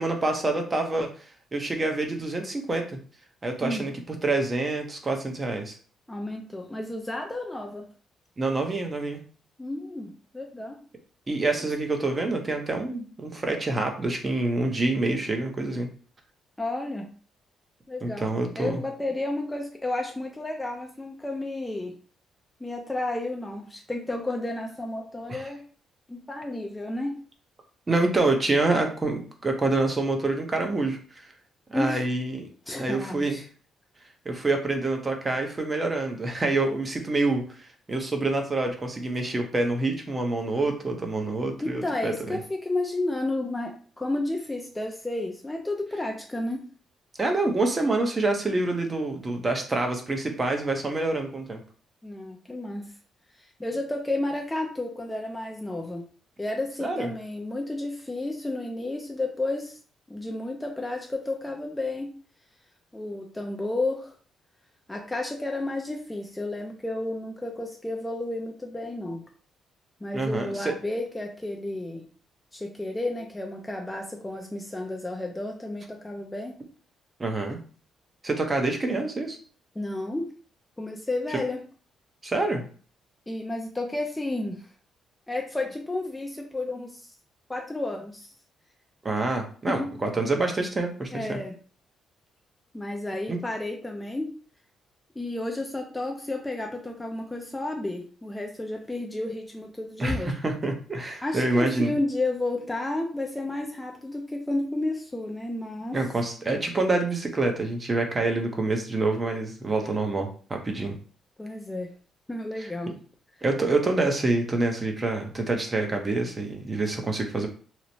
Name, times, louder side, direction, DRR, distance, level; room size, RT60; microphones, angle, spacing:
voice 1, 0.0-3.0 3.4-5.8 8.4-9.2 11.3-15.9 18.0-18.8 25.3-25.5 27.9-31.3 31.7-32.4 32.8-33.4 34.2-37.4 37.9-42.4 47.2-51.6 56.8-57.1 70.1-70.7 77.2-77.6 78.2-79.4 82.2-82.6 89.0-91.4 93.3-93.4 100.0-102.0 105.9-111.0 112.6-112.7 113.4-117.5, right 2 dB, 25° right, 3 dB, 0.6 m, -27 dB
voice 2, 6.1-7.9 9.6-10.8 16.6-17.1 17.9-18.3 18.6-21.9 22.6-25.6 26.1-27.1 31.7-32.1 32.7-33.4 41.6-46.6 52.0-52.8 53.6-56.0 56.4-59.8 60.1-62.1 62.9-64.1 64.9-69.2 70.0-72.0 72.5-76.5 79.8-80.3 80.8-81.6 83.3-84.6 85.3-87.1 87.5-88.3 89.7-89.9 91.1-91.5 92.7-94.3 95.2-100.3 101.2-106.0 111.4-111.9 112.3-112.9, left 2 dB, 15° left, 1 dB, 0.4 m, -31 dB
2.9 x 2.0 x 2.7 m, 0.41 s
cardioid pair, 90°, 0 cm